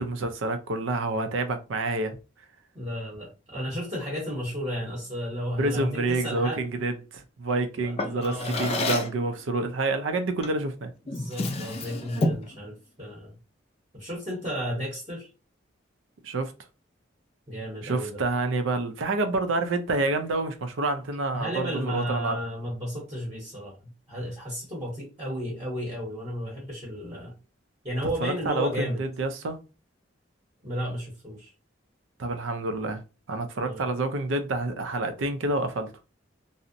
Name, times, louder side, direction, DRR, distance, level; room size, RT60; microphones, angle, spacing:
voice 1, 0.0-2.2 5.6-10.9 16.2-16.5 17.8-22.4 28.2-29.6 32.2-33.0 33.3-35.9, right 2 dB, 80° right, 0.5 m, -28 dB
voice 2, 2.7-6.8 7.8-8.7 11.0-13.3 13.9-15.3 17.5-18.2 21.3-27.3 27.8-29.0 30.6-31.5 33.6-33.9, equal, 30° right, 0.8 m, -33 dB
Drawer open or close, 8.0-9.2 10.4-10.7 11.1-12.5, left 2 dB, 30° left, 0.3 m, -29 dB
2.6 x 2.0 x 2.5 m
head